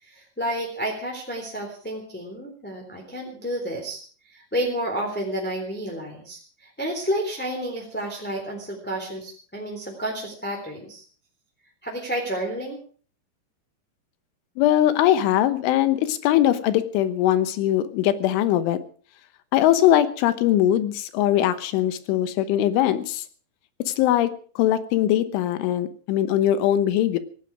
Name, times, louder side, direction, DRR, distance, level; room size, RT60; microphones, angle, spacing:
voice 1, 0.0-11.0 11.8-12.8, right 1 dB, 5° left, 0 dB, 2.6 m, -30 dB
voice 2, 14.6-18.8 19.5-23.2 23.9-27.2, left 12 dB, 80° left, 12 dB, 3.5 m, -21 dB
17.5 x 15.5 x 4.8 m, 0.42 s
omnidirectional pair, 5.6 m